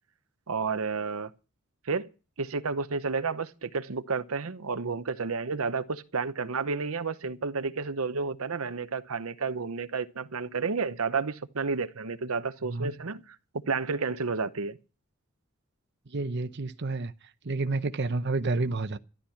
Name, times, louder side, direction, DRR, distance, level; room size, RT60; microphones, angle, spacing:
voice 1, 0.5-1.3 1.8-2.1 2.4-13.4 13.7-14.8, right 4 dB, 85° right, 0.9 m, -31 dB
voice 2, 12.7-13.0 16.1-17.1 17.4-19.0, right 3 dB, 55° right, 0.8 m, -30 dB
13.0 x 11.5 x 5.8 m
head